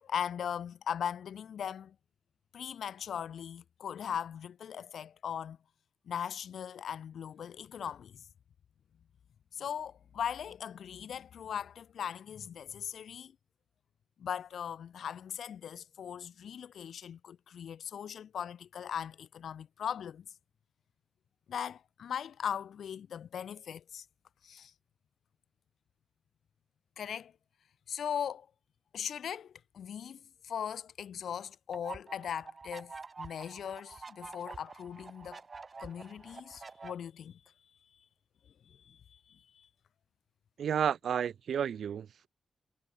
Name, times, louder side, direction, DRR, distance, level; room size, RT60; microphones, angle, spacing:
voice 1, 0.0-2.0 2.5-5.6 6.1-8.2 9.5-13.4 14.2-20.3 21.5-24.0 24.4-24.7 27.0-27.3 27.9-28.5 28.9-35.4 35.8-37.4 38.7-39.7, left 8 dB, 80° left, 2.2 m, -39 dB
sound 1, 31.7-36.9, right 4 dB, 30° right, 0.8 m, -47 dB
voice 2, 40.6-42.3, right 8 dB, 75° right, 0.5 m, -31 dB
wide cardioid pair, 165°, 0 cm